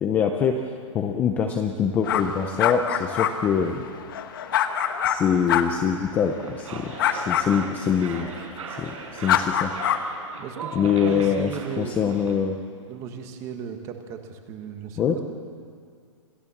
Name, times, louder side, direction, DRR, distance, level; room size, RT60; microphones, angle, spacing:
voice 1, 0.0-0.6 0.9-3.8 5.0-8.3 8.8-9.7 10.7-11.5 11.8-12.5 15.0-15.2, left 7 dB, 10° left, 4 dB, 0.6 m, -24 dB
sound 1, 2.0-5.2 5.5-5.6 7.0-7.4 9.3-10.0, left 10 dB, 40° left, 1.3 m, -24 dB
sound 2, 6.1-12.4, right 4 dB, 90° right, 4.8 m, -39 dB
voice 2, 10.4-12.2 12.9-15.2, right 7 dB, 20° right, 6 dB, 1.3 m, -36 dB
27.5 x 15.5 x 7.2 m, 2.2 s
hypercardioid pair, 175°, 17 cm